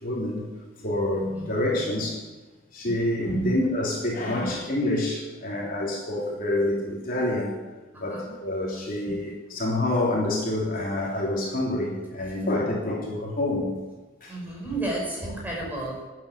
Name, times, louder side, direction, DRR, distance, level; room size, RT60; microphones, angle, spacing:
voice 1, 0.0-0.5 0.8-2.2 2.7-7.5 8.0-13.7 14.2-14.3, left 1 dB, 45° left, -3 dB, 3.3 m, -27 dB
voice 2, 3.2-3.6 4.3-4.5 7.9-8.3 9.0-9.3 12.2-12.3 14.3-16.0, right 2 dB, 10° right, -3 dB, 5.2 m, -32 dB
13.0 x 9.5 x 8.8 m, 1.2 s
head